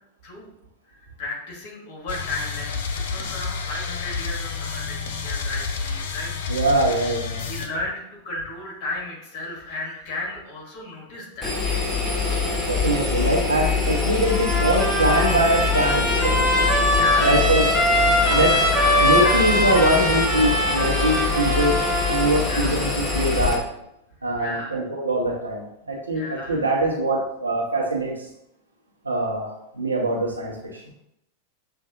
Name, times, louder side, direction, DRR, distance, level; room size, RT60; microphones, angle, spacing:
voice 1, 0.9-6.3 7.4-11.5 16.9-17.4 18.2-19.4 22.4-23.0 24.4-24.8 26.1-26.7, left 2 dB, 40° left, -2 dB, 1.6 m, -34 dB
sound 1, 2.1-7.7, left 5 dB, 55° left, 0.4 m, -30 dB
voice 2, 6.5-7.4 12.7-16.4 17.2-17.7 18.3-18.5 19.0-21.8 22.0-22.9 23.1-23.6 24.2-28.1 29.0-30.8, right 1 dB, 80° right, -3 dB, 1.0 m, -23 dB
Engine, 11.4-23.5, left 4 dB, 15° left, 1.1 m, -24 dB
Trumpet, 14.3-22.4, left 1 dB, 5° right, 1.5 m, -22 dB
7.0 x 2.6 x 2.5 m, 0.81 s
figure-of-eight pair, 90°, 0 cm